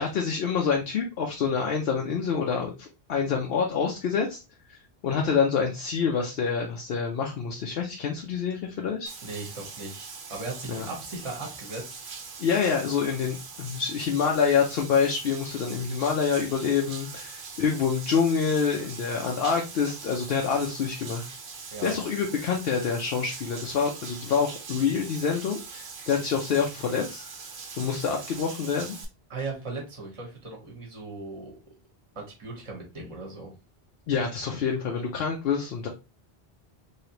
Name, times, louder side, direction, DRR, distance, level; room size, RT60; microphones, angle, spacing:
voice 1, 0.0-4.4 4.7-4.8 5.0-9.1 10.7-10.9 12.4-21.3 21.8-27.2 27.8-28.9 34.1-35.9, left 6 dB, 70° left, 1 dB, 0.8 m, -27 dB
Bathtub (filling or washing), 9.1-29.1, right 5 dB, 80° right, 1.0 m, -42 dB
voice 2, 9.2-12.0 21.7-21.9 29.3-31.6 32.1-33.5, right 3 dB, 30° right, 0 dB, 1.0 m, -38 dB
3.2 x 2.8 x 2.8 m, 0.29 s
omnidirectional pair, 1.1 m